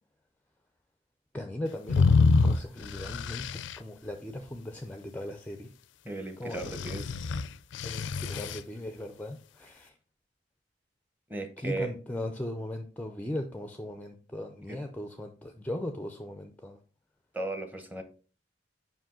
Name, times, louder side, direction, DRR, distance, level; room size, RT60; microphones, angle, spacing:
voice 1, 1.3-5.7 6.4-6.6 7.8-9.9 11.6-16.8, left 1 dB, 10° left, 7 dB, 0.4 m, -38 dB
sound 1, 1.9-3.8 6.6-8.6, left 4 dB, 80° left, 0.4 m, -26 dB
voice 2, 6.0-7.1 11.3-11.9 14.7-14.8 17.3-18.0, right 2 dB, 10° right, 6 dB, 0.9 m, -36 dB
5.4 x 5.0 x 3.7 m, 0.38 s
head